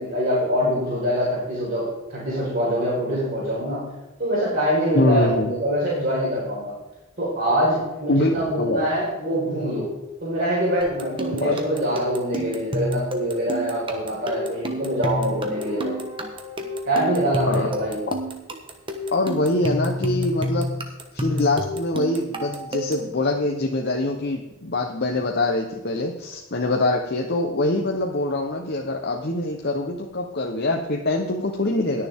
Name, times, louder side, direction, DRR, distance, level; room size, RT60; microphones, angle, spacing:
voice 1, 0.0-3.8 4.2-6.7 7.2-9.9 10.2-15.9 16.9-18.0, equal, 40° right, -8 dB, 4.7 m, -24 dB
voice 2, 4.9-5.5 8.1-8.9 11.4-11.6 17.5-17.7 19.1-20.8 21.1-32.1, left 2 dB, 50° left, 1 dB, 1.0 m, -24 dB
sound 1, 10.8-23.1, left 1 dB, 25° right, 1.2 m, -29 dB
Guitar, 15.1-18.6, left 1 dB, 5° right, 4.3 m, -41 dB
20.5 x 6.8 x 3.6 m, 1.1 s
head